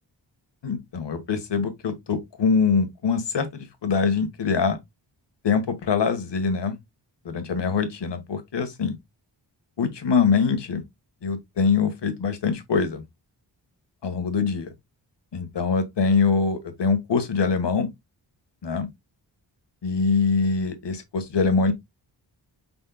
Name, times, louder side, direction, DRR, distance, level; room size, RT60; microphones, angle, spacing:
voice 1, 0.6-4.8 5.4-6.8 7.2-9.0 9.8-10.8 11.2-13.0 14.0-14.7 15.3-17.9 18.6-18.9 19.8-21.7, left 5 dB, 70° left, 1.6 m, -23 dB
5.5 x 4.3 x 2.2 m
cardioid pair, 65°, 44 cm